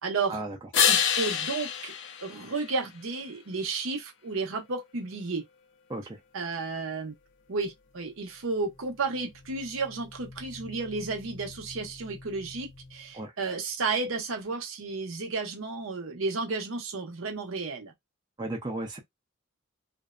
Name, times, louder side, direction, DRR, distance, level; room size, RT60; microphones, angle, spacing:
voice 1, 0.0-0.4 0.9-1.9 2.2-5.4 6.3-7.1 7.5-17.9, right 4 dB, 70° right, 0.8 m, -32 dB
sound 1, 0.7-3.3 9.0-13.0, left 8 dB, 60° left, 0.5 m, -31 dB
voice 2, 18.4-19.0, right 2 dB, 20° right, 0.6 m, -34 dB
2.7 x 2.1 x 2.4 m
head